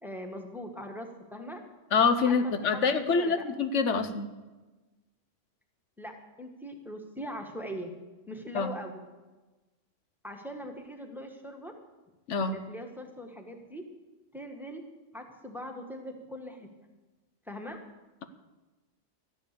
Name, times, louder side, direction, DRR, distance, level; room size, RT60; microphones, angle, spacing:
voice 1, 0.0-1.6 2.2-2.4 2.6-3.4 6.0-7.9 8.3-9.0 10.2-11.7 12.5-13.8 14.3-14.8 15.1-16.7 17.5-17.8, equal, ahead, 3 dB, 1.5 m, -41 dB
voice 2, 1.9-4.3 8.5-8.7 12.3-12.5, left 5 dB, 75° left, 9 dB, 1.2 m, -26 dB
13.5 x 10.5 x 6.8 m, 1.2 s
omnidirectional pair, 1.3 m